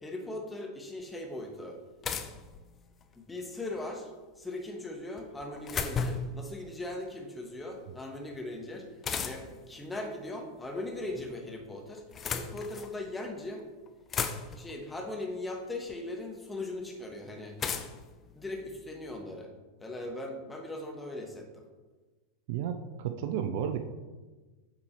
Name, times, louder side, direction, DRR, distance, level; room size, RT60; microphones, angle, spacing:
voice 1, 0.0-1.8 3.1-4.1 4.4-8.9 9.2-12.0 12.3-13.7 14.6-17.6 18.3-19.5 19.8-21.6, left 2 dB, 10° left, 2 dB, 1.1 m, -39 dB
sound 1, 1.0-1.1 2.0-3.2 5.2-6.4 9.0-9.7 10.8-11.4 12.0-13.0 13.6-13.7 13.9-14.8 15.9-16.0 17.6-19.1, left 6 dB, 25° left, 0.5 m, -35 dB
voice 2, 22.5-23.8, right 9 dB, 55° right, 8 dB, 0.4 m, -32 dB
8.6 x 4.2 x 2.9 m, 1.3 s
figure-of-eight pair, 90°, 0 cm